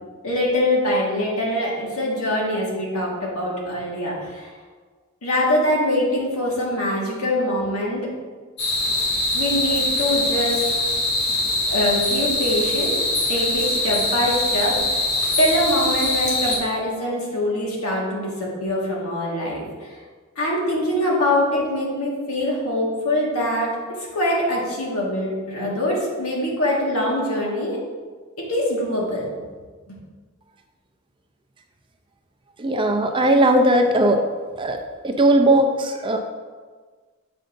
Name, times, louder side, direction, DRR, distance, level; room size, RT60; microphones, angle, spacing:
voice 1, 0.2-4.5 5.2-8.1 9.3-10.6 11.6-15.1 15.4-19.9 20.3-27.8 28.4-29.2 29.9-30.0, left 1 dB, 85° left, -3 dB, 1.6 m, -23 dB
sound 1, 8.6-16.6, left 2 dB, 50° left, 1.5 m, -23 dB
voice 2, 32.6-34.2 34.6-34.8 35.0-36.2, right 1 dB, 20° right, 4 dB, 0.4 m, -18 dB
7.5 x 5.2 x 2.6 m, 1.5 s
head